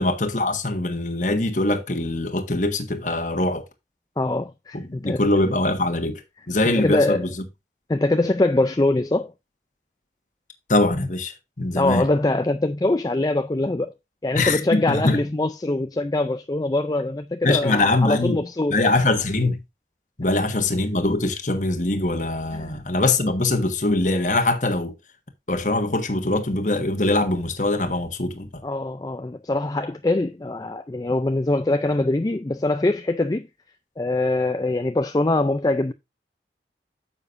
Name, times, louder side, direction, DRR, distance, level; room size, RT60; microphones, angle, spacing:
voice 1, 0.0-3.6 4.7-7.4 10.7-12.0 14.3-15.2 17.4-18.4 18.7-19.6 20.2-24.9 25.5-28.6, left 2 dB, 45° left, 1.4 m, -23 dB
voice 2, 4.2-5.2 6.7-7.2 7.9-9.3 11.8-13.9 14.2-18.8 22.5-22.8 28.6-33.5 34.0-35.9, left 2 dB, 20° left, 0.4 m, -23 dB
9.7 x 7.0 x 2.6 m
head